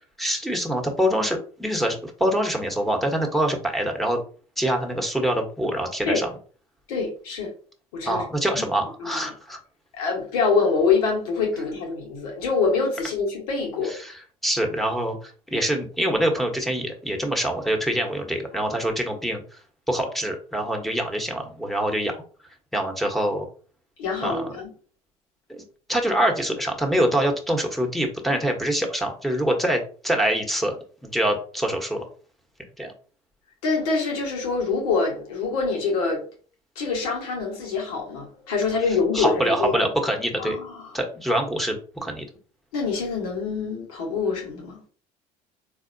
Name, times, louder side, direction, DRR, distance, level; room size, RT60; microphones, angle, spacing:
voice 1, 0.2-4.2 4.6-6.3 8.0-9.6 13.8-19.4 19.9-22.2 22.7-23.5 24.2-24.6 25.5-25.6 25.9-30.8 31.0-32.0 32.8-32.9 39.1-40.6 40.9-42.3, right 1 dB, ahead, 1.1 m, -25 dB
voice 2, 6.9-7.5 7.9-8.2 9.0-9.3 10.0-13.9 24.0-24.7 33.6-36.2 36.7-39.9 40.4-40.9 42.7-44.8, left 4 dB, 75° left, 1.4 m, -25 dB
4.0 x 2.8 x 2.7 m
hypercardioid pair, 70°, 19 cm